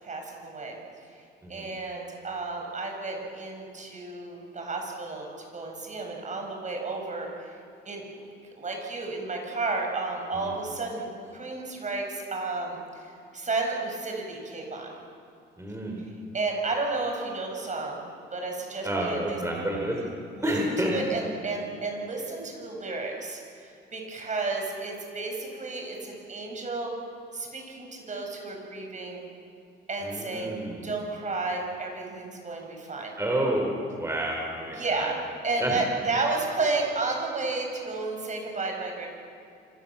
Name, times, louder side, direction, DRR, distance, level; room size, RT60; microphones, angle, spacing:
voice 1, 0.0-0.8 1.5-7.6 7.9-8.0 8.6-12.8 13.3-14.9 16.3-18.0 18.3-19.4 20.4-20.5 20.9-26.9 27.3-29.2 29.9-30.6 30.8-33.1 34.7-35.2 35.4-39.1, right 3 dB, 40° right, 1 dB, 7.6 m, -32 dB
voice 2, 15.6-16.0 18.8-20.2 20.4-20.9 30.0-30.9 33.2-35.1 35.6-35.8, right 1 dB, 15° right, -1 dB, 5.3 m, -29 dB
26.5 x 25.0 x 7.6 m, 2.5 s
cardioid pair, 90°, 20 cm